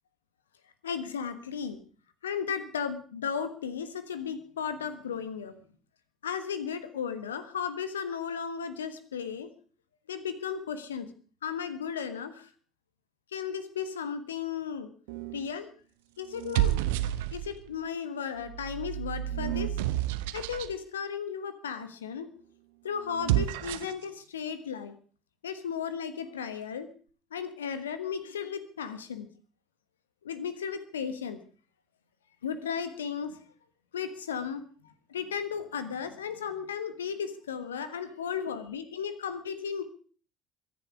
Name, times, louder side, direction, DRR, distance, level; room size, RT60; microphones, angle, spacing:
voice 1, 0.8-1.8 2.2-5.6 6.2-9.5 10.1-11.1 11.4-12.5 13.3-14.9 15.3-15.7 16.2-16.9 17.3-19.7 20.3-22.3 22.8-24.9 25.4-26.9 27.3-29.3 30.2-31.4 32.4-33.3 33.9-34.6 35.1-39.8, left 7 dB, 75° left, 12 dB, 1.3 m, -35 dB
sound 1, 15.1-15.5 16.3-17.7 18.4-20.7 23.1-24.0, right 14 dB, 65° right, 0.8 m, -30 dB
23.0 x 10.5 x 4.8 m, 0.41 s
figure-of-eight pair, 55°, 0 cm